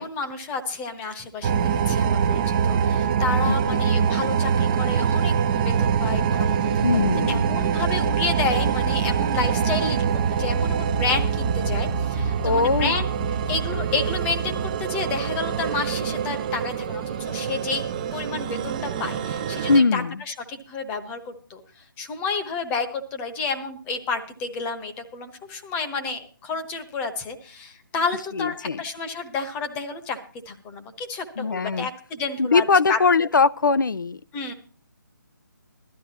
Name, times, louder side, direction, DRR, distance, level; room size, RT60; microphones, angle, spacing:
voice 1, 0.0-10.0 10.3-13.1 13.5-17.9 18.1-21.6 22.0-30.2 30.5-33.0 34.3-34.5, left 4 dB, 15° left, 1.1 m, -30 dB
sound 1, 1.4-19.8, right 7 dB, 25° right, 0.7 m, -24 dB
voice 2, 3.5-4.0 6.8-7.5 12.4-12.9 19.7-20.2 28.3-28.8 31.4-31.9 32.4-34.2, left 4 dB, 65° left, 0.6 m, -21 dB
17.0 x 12.5 x 2.9 m
figure-of-eight pair, 150°, 11 cm